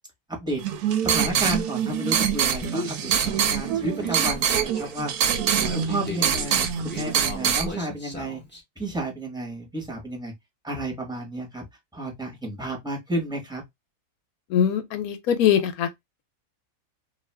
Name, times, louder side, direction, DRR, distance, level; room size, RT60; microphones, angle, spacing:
sound 1, 0.6-7.7, right 8 dB, 75° right, 1.0 m, -24 dB
voice 1, 1.0-5.1 5.6-8.4 8.8-10.3 10.6-11.6 11.9-13.6, right 1 dB, 5° right, 0.8 m, -32 dB
Human voice, 2.6-8.6, left 1 dB, 15° left, 0.3 m, -37 dB
voice 2, 14.5-15.9, left 9 dB, 70° left, 0.9 m, -22 dB
2.6 x 2.4 x 3.2 m
omnidirectional pair, 1.8 m